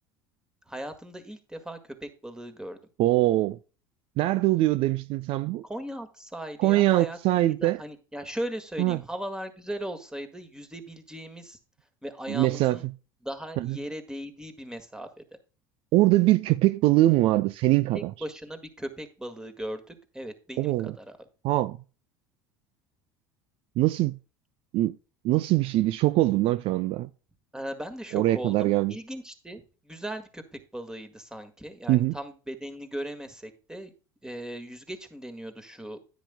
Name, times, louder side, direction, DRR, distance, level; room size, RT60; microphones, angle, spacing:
voice 1, 0.7-2.8 5.6-11.6 12.0-12.9 13.2-15.1 17.9-21.2 27.5-33.9 34.2-36.0, right 1 dB, 5° right, 1.8 m, -38 dB
voice 2, 3.0-3.6 4.2-5.6 6.6-7.8 8.8-9.0 12.3-12.8 13.6-13.8 15.9-18.1 20.6-20.9 21.4-21.8 23.8-24.2 24.7-25.0 25.2-27.1 28.1-28.9 31.9-32.1, right 17 dB, 60° right, 0.4 m, -23 dB
10.0 x 9.4 x 2.2 m
hypercardioid pair, 80°, 11 cm